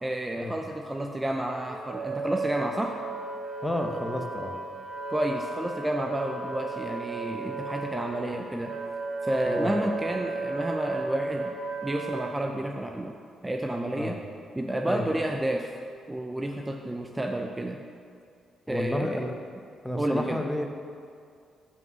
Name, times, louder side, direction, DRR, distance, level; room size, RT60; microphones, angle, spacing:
voice 1, 0.0-2.9 5.1-8.7 9.2-11.6 11.8-13.1 13.4-14.2 14.6-15.7 16.1-17.8 18.7-19.2 20.0-20.4, right 1 dB, 15° right, 2 dB, 0.5 m, -30 dB
Wind instrument woodwind instrument, 1.5-12.3, right 3 dB, 70° right, 1.3 m, -35 dB
voice 2, 3.6-4.6 9.5-9.8 13.9-14.2 14.8-15.1 18.7-19.4 19.8-20.7, left 1 dB, 10° left, 4 dB, 0.8 m, -31 dB
5.5 x 5.3 x 6.1 m, 2.3 s
supercardioid pair, 65°, 0 cm